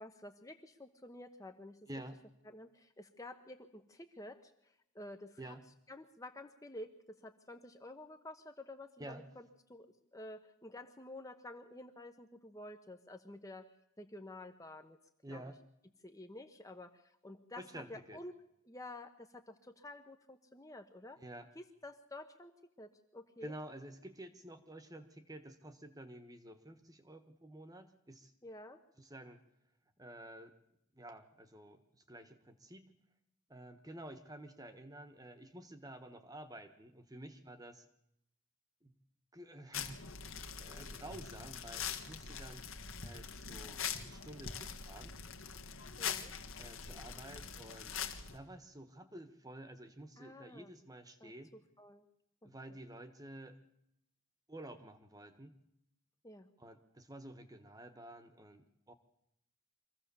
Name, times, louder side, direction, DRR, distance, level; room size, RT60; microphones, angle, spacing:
voice 1, 0.0-1.8 2.5-5.5 5.9-13.6 14.0-15.0 15.3-15.4 16.0-18.4 18.7-21.2 21.5-22.5 22.8-23.5 28.4-28.8 46.0-46.3 50.2-50.7 51.2-51.3 51.8-52.0 52.4-52.8 56.2-56.5, left 1 dB, 15° left, 7 dB, 1.0 m, -51 dB
voice 2, 1.9-2.2 5.4-5.7 9.0-9.2 15.2-15.6 17.5-18.2 21.2-21.5 23.4-28.3 29.0-29.4 30.0-30.5 30.9-32.9 33.5-37.8 38.8-39.0 39.3-40.1 40.6-42.6 43.0-45.1 46.6-47.9 48.3-51.5 52.4-53.6 54.5-55.5 56.6-58.9, right 1 dB, 20° right, 9 dB, 1.4 m, -51 dB
sound 1, 39.7-48.4, left 7 dB, 80° left, 1.8 m, -43 dB
24.5 x 15.5 x 7.0 m, 0.80 s
head